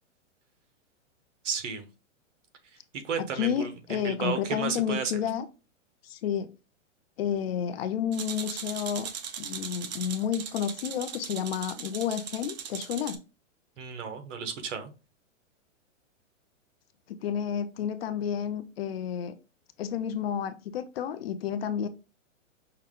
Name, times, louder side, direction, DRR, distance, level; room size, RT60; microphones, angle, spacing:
voice 1, 1.4-1.8 2.9-5.1 13.8-14.9, right 6 dB, 65° right, 7 dB, 1.1 m, -33 dB
voice 2, 3.2-5.5 6.0-6.5 7.2-9.1 9.4-13.2 17.2-19.4 19.8-21.9, left 8 dB, 50° left, 12 dB, 0.5 m, -31 dB
sound 1, 8.1-13.2, right 8 dB, 35° right, 0.4 m, -39 dB
5.6 x 2.2 x 3.6 m, 0.30 s
hypercardioid pair, 155°, 39 cm